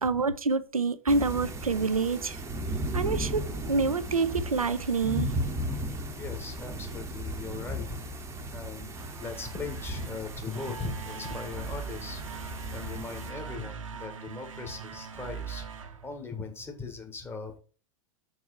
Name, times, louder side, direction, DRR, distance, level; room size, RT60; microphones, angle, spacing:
voice 1, 0.0-2.4 2.9-5.3, right 4 dB, 80° right, 0.7 m, -27 dB
sound 1, 1.1-13.3, equal, 15° right, 1.1 m, -36 dB
voice 2, 6.1-8.0 8.5-15.7 16.0-17.6, left 4 dB, 15° left, 1.7 m, -39 dB
sound 2, 8.9-16.8, right 7 dB, 65° right, 1.0 m, -42 dB
6.1 x 4.8 x 5.8 m
figure-of-eight pair, 95°, 18 cm